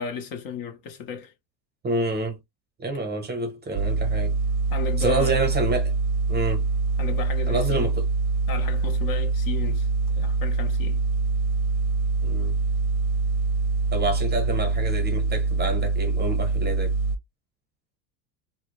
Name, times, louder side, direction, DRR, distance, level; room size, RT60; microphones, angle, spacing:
voice 1, 0.0-1.3 4.7-5.4 7.0-7.9 8.5-9.9 10.1-11.0, left 6 dB, 45° left, 0.6 m, -34 dB
voice 2, 1.8-2.4 2.8-4.4 5.0-5.9 6.3-6.7 7.5-8.0 12.2-12.6 13.9-16.9, right 2 dB, 20° right, 0.8 m, -27 dB
sound 1, 3.7-17.2, right 3 dB, 55° right, 0.6 m, -24 dB
2.2 x 2.1 x 2.9 m
supercardioid pair, 100°, 47 cm